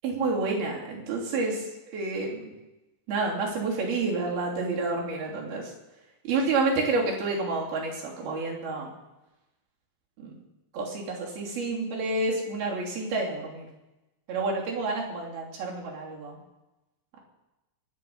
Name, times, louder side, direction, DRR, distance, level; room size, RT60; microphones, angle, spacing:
voice 1, 0.0-2.5 3.1-5.7 6.2-8.9 10.2-10.3 10.7-13.7 14.3-16.4, right 3 dB, 55° right, -3 dB, 4.8 m, -29 dB
23.0 x 9.5 x 5.5 m, 0.99 s
omnidirectional pair, 5.3 m